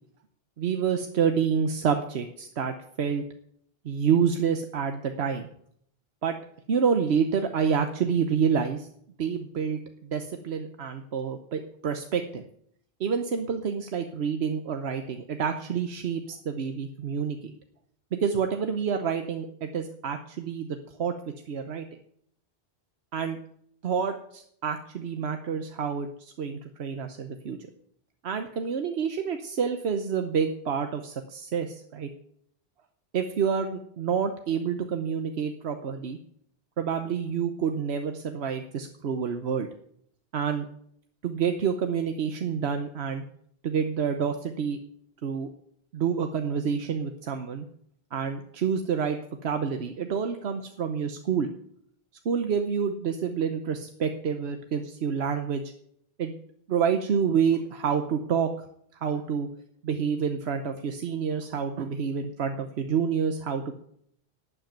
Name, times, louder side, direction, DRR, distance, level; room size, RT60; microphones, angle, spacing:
voice 1, 0.6-3.2 3.8-5.5 6.2-6.4 6.7-8.9 9.2-12.4 13.0-17.4 18.1-21.1 21.5-21.8 23.1-23.4 23.8-27.6 28.2-32.1 33.1-36.2 36.8-39.7 40.3-40.7 41.2-43.2 43.6-44.8 45.2-45.5 45.9-47.7 48.1-51.5 52.2-55.6 56.2-56.3 56.7-58.5 59.0-59.5 59.8-63.7, right 6 dB, 90° right, 7 dB, 1.2 m, -28 dB
12.0 x 8.6 x 9.1 m, 0.70 s
omnidirectional pair, 1.0 m